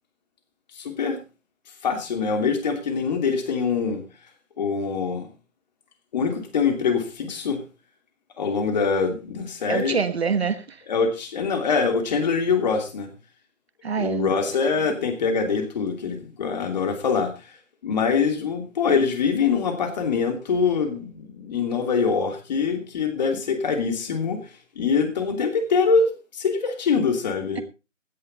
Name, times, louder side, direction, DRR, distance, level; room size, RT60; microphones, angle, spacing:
voice 1, 0.7-1.2 1.8-4.0 4.6-5.3 6.1-7.6 8.4-10.0 10.9-13.1 14.0-17.5 17.8-24.5 24.7-27.6, left 5 dB, 35° left, 2.9 m, -24 dB
voice 2, 9.7-10.8 13.8-14.3 27.6-27.7, right 6 dB, 55° right, 1.3 m, -25 dB
16.5 x 10.5 x 4.1 m
figure-of-eight pair, 150°, 39 cm